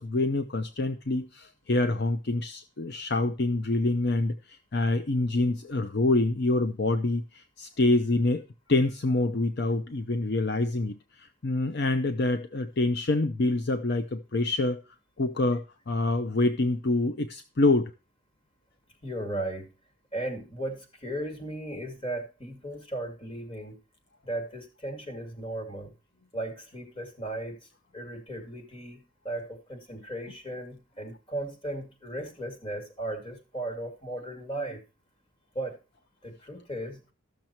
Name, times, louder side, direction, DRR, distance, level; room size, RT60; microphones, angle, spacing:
voice 1, 0.0-8.4 8.7-14.8 15.2-17.9, left 2 dB, 50° left, 9 dB, 0.7 m, -26 dB
voice 2, 19.0-19.7 20.1-23.8 24.2-25.9 26.3-27.7 27.9-34.8 35.5-35.8 36.2-37.0, right 1 dB, 25° left, 4 dB, 2.6 m, -36 dB
13.5 x 6.8 x 4.4 m, 0.31 s
head